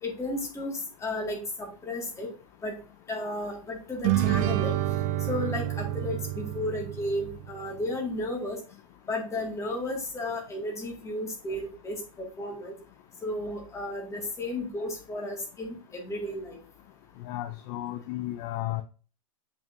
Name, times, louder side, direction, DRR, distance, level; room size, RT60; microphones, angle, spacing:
voice 1, 0.0-2.3 2.6-2.7 3.1-4.7 5.3-8.6 9.1-12.7 13.2-16.6, left 1 dB, 15° left, 0 dB, 2.1 m, -33 dB
sound 1, 4.0-7.7, right 13 dB, 40° right, 0.6 m, -28 dB
voice 2, 17.2-18.8, left 15 dB, 40° left, 12 dB, 0.4 m, -33 dB
6.8 x 5.4 x 2.7 m, 0.36 s
figure-of-eight pair, 95°, 18 cm